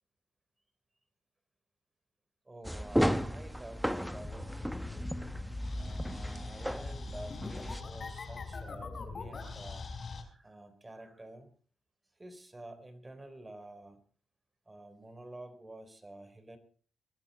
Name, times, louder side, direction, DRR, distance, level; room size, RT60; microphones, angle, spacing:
voice 1, 2.4-5.3 5.8-11.5 12.1-14.0 14.7-16.6, right 1 dB, 20° right, 11 dB, 3.9 m, -50 dB
sound 1, 2.6-7.8, equal, ahead, 1.0 m, -34 dB
sound 2, 4.1-10.2, left 4 dB, 45° left, 4.5 m, -43 dB
22.5 x 12.0 x 4.2 m, 0.41 s
cardioid pair, 70°, 0 cm